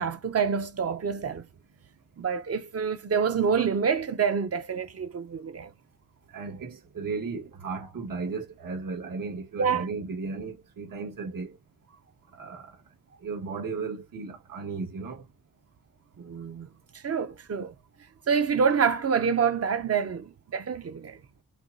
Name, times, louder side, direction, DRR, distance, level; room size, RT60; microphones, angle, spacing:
voice 1, 0.0-1.4 2.2-5.7 9.6-9.9 16.2-16.7 16.9-17.7 18.3-21.2, right 6 dB, 45° right, 0.6 m, -27 dB
voice 2, 6.3-11.6 12.4-12.7 13.2-15.2, right 4 dB, 75° right, 1.7 m, -35 dB
6.1 x 2.3 x 2.7 m
wide cardioid pair, 135°, 33 cm